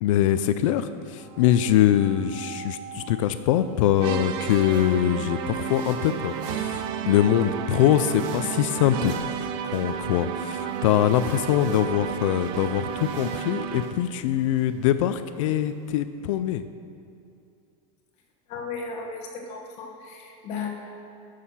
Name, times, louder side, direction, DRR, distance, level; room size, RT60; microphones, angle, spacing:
voice 1, 0.0-9.1 9.7-16.7, left 11 dB, 55° left, 11 dB, 0.4 m, -23 dB
sound 1, 1.0-10.8, right 4 dB, 80° right, 2.7 m, -42 dB
sound 2, 3.3-15.9, right 3 dB, 55° right, 1.8 m, -45 dB
sound 3, 4.0-14.1, right 9 dB, 25° right, 0.3 m, -32 dB
voice 2, 18.5-20.7, left 5 dB, 35° left, 1 dB, 1.2 m, -35 dB
12.5 x 6.5 x 5.6 m, 2.5 s
supercardioid pair, 170°, 20 cm